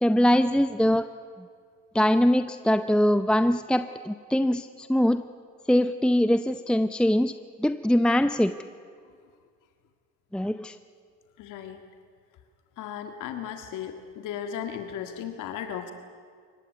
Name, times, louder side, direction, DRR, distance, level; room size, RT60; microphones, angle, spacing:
voice 1, 0.0-1.1 1.9-5.2 5.7-8.6 10.3-10.8, equal, 5° left, 11 dB, 0.6 m, -22 dB
voice 2, 11.4-11.8 12.8-15.9, left 9 dB, 80° left, 6 dB, 1.9 m, -36 dB
23.5 x 19.0 x 9.5 m, 2.1 s
cardioid pair, 100°, 31 cm